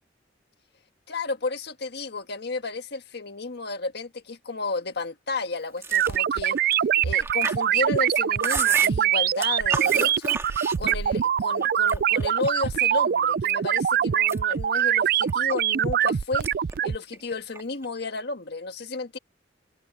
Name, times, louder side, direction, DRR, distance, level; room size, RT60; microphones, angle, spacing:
voice 1, 1.1-6.6 7.0-10.4 10.8-16.5 16.8-19.2, left 3 dB, 60° left, 1.6 m, -32 dB
Chewing mastication, 5.8-11.3 11.6-12.7 13.2-13.8 14.1-16.1 16.4-16.8 17.0-17.9, right 3 dB, 15° right, 1.7 m, -34 dB
sound 1, 5.9-17.0, right 9 dB, 55° right, 0.4 m, -23 dB
open air
head